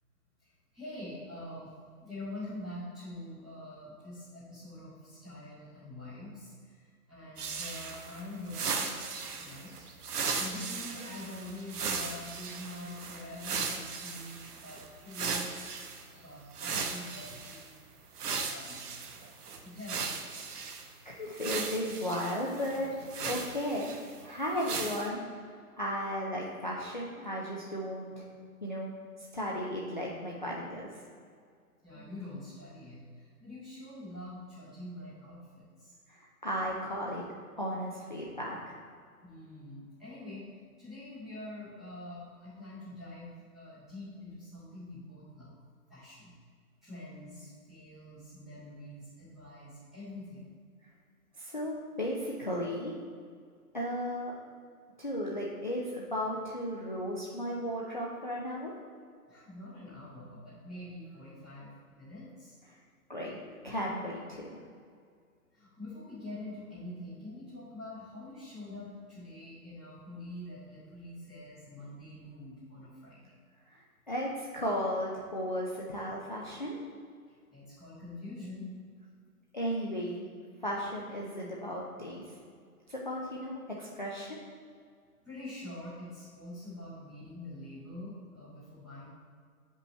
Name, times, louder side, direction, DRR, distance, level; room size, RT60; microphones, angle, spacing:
voice 1, 0.4-9.9 10.3-15.7 16.1-17.7 18.2-18.8 19.5-20.1 31.8-35.9 39.2-45.5 45.9-46.3 46.8-50.5 59.3-62.5 65.5-73.3 77.3-78.7 82.8-82.9 85.2-89.0, left 1 dB, ahead, -18 dB, 0.7 m, -45 dB
sound 1, 7.4-16.0 16.5-17.7 18.2-20.9 21.4-24.2 24.6-25.1, right 5 dB, 80° right, 1.0 m, -37 dB
voice 2, 21.1-23.9 24.2-25.2 25.8-28.2 28.6-28.9 29.3-30.9 36.1-37.2 37.6-38.8 51.4-53.0 53.7-54.4 55.0-58.7 63.1-63.4 63.6-64.6 73.7-76.8 79.5-80.3 80.6-82.2 82.9-84.4, equal, 35° left, -4 dB, 0.4 m, -35 dB
8.2 x 5.2 x 3.2 m, 2.1 s
hypercardioid pair, 170°, 46 cm